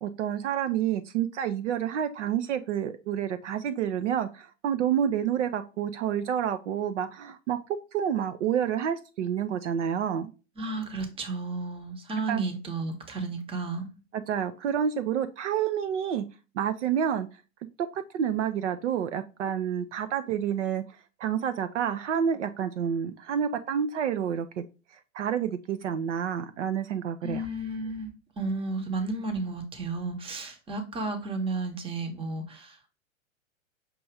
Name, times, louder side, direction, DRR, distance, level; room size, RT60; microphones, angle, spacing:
voice 1, 0.0-7.6 7.9-10.3 12.3-12.4 14.1-16.2 16.5-17.3 17.9-20.8 21.2-24.6 25.1-27.4, right 8 dB, 65° right, 0.6 m, -29 dB
voice 2, 10.6-13.9 27.2-32.9, right 3 dB, 15° right, 0.9 m, -33 dB
6.0 x 2.5 x 3.3 m
figure-of-eight pair, 100°, 39 cm